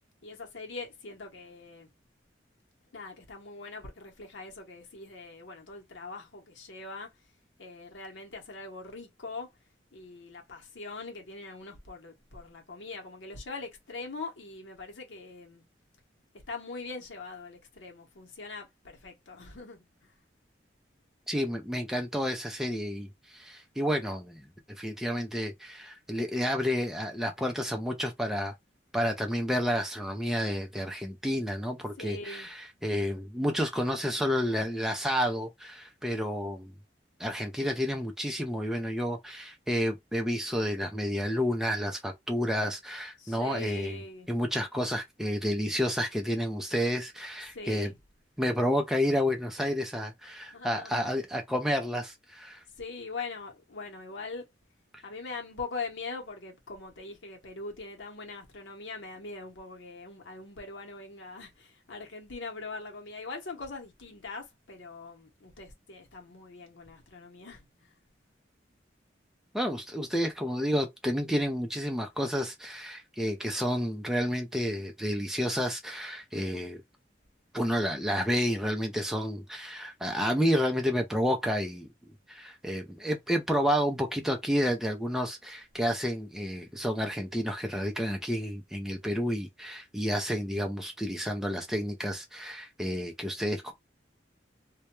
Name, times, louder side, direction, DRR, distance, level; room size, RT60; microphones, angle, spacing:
voice 1, 0.2-1.9 2.9-7.1 7.6-9.5 9.9-15.6 16.5-20.1 32.0-32.5 43.2-44.3 47.5-48.0 50.5-51.0 52.8-54.5 55.0-67.9, left 3 dB, 85° left, 0.8 m, -42 dB
voice 2, 21.3-28.5 28.9-36.7 37.2-44.0 44.3-47.9 48.4-52.6 69.5-76.8 77.5-81.9 82.3-93.7, equal, ahead, 0.4 m, -30 dB
2.2 x 2.1 x 2.9 m
head